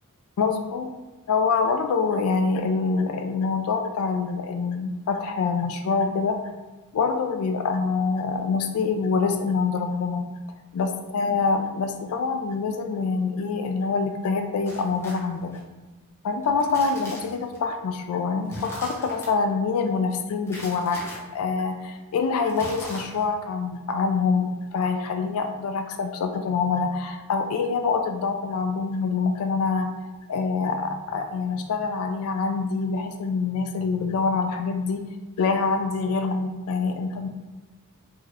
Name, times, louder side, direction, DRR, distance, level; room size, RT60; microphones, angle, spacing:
voice 1, 0.4-0.9 1.3-6.4 6.9-10.2 10.7-15.6 16.2-29.9 30.3-35.0 35.4-37.3, left 4 dB, 70° left, 5 dB, 0.3 m, -25 dB
sound 1, 14.7-15.6 16.4-17.6 18.4-19.3 20.5-21.2 22.5-23.4, left 1 dB, 10° left, 0.6 m, -39 dB
2.7 x 2.4 x 3.2 m, 1.2 s
head